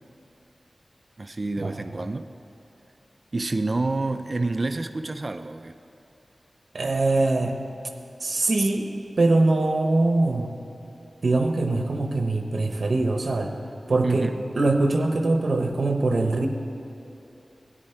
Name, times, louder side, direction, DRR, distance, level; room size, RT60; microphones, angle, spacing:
voice 1, 1.2-2.3 3.3-5.8 14.0-14.4, right 2 dB, 45° right, 9 dB, 0.4 m, -28 dB
voice 2, 6.7-7.6 8.2-8.9 9.2-10.6 11.2-13.5 13.9-14.3 14.5-16.5, right 2 dB, 65° right, 4 dB, 0.8 m, -22 dB
13.5 x 9.8 x 4.4 m, 3.0 s
wide cardioid pair, 80°, 0 cm